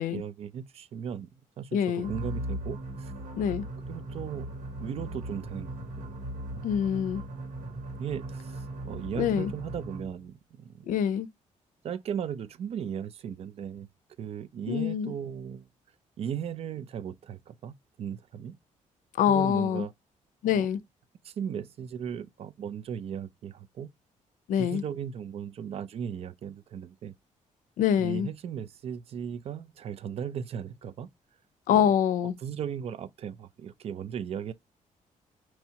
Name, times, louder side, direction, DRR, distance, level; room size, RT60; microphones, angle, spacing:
voice 1, 0.0-3.1 3.9-4.5 4.8-5.7 6.5-7.0 8.0-10.9 11.8-13.9 14.2-15.7 16.2-18.6 19.3-19.9 20.4-20.7 21.2-23.9 24.6-27.1 28.0-31.1 31.7-32.0 32.4-34.5, right 8 dB, 50° right, 0.4 m, -37 dB
voice 2, 1.7-2.1 3.4-3.6 6.6-7.2 9.2-9.5 10.9-11.3 14.7-15.1 19.2-19.8 20.4-20.8 24.5-24.8 27.8-28.3 31.7-32.3, left 9 dB, 90° left, 0.5 m, -25 dB
sound 1, 2.0-10.2, right 1 dB, 80° right, 1.7 m, -38 dB
5.5 x 3.0 x 2.8 m
cardioid pair, 165°, 13 cm